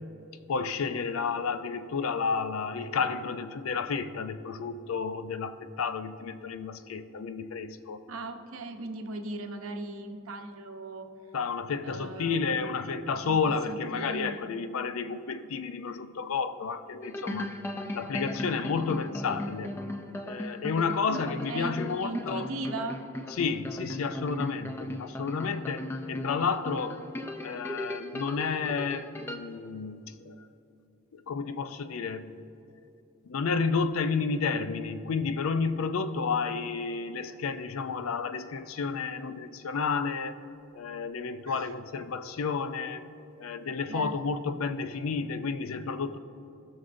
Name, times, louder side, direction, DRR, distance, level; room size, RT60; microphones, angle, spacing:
voice 1, 0.5-8.0 11.3-17.5 17.9-19.7 20.3-22.5 23.3-27.0 27.4-30.5 31.1-32.4 33.2-40.3 40.7-43.0 43.4-46.2, left 5 dB, 80° left, 11 dB, 0.4 m, -31 dB
voice 2, 8.1-11.1 11.8-12.5 13.3-13.4 13.7-14.5 21.1-23.0 41.5-41.7 43.9-44.1, right 2 dB, 80° right, 5 dB, 0.7 m, -38 dB
sound 1, 17.0-29.4, left 1 dB, 10° left, 0.4 m, -37 dB
16.5 x 6.4 x 2.6 m, 2.7 s
head